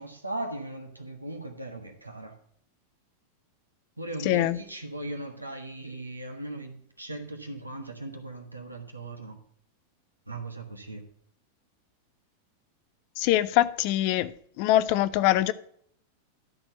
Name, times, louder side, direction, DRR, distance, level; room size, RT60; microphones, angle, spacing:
voice 1, 0.0-2.4 4.0-9.4 10.3-11.0, right 1 dB, 85° right, 1.5 m, -38 dB
voice 2, 4.2-4.6 13.2-14.3 14.6-15.5, left 14 dB, 45° left, 0.5 m, -23 dB
12.0 x 4.4 x 6.8 m
figure-of-eight pair, 90°, 0 cm